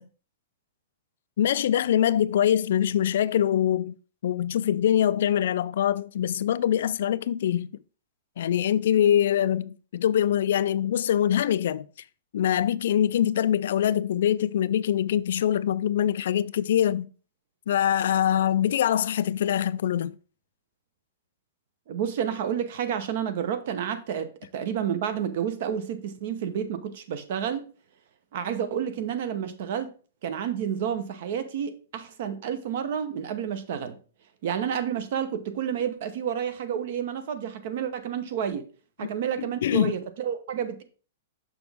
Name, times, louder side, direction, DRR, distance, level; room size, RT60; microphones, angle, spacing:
voice 1, 1.4-3.9 4.2-7.7 8.4-11.9 12.3-17.1 17.7-20.1 39.0-39.1 39.6-39.9, left 10 dB, 60° left, 0.3 m, -24 dB
voice 2, 21.9-27.7 28.3-29.9 30.2-34.0 34.4-38.7 39.0-40.8, right 8 dB, 50° right, 0.8 m, -30 dB
6.1 x 6.0 x 3.4 m
hypercardioid pair, 170°, 0 cm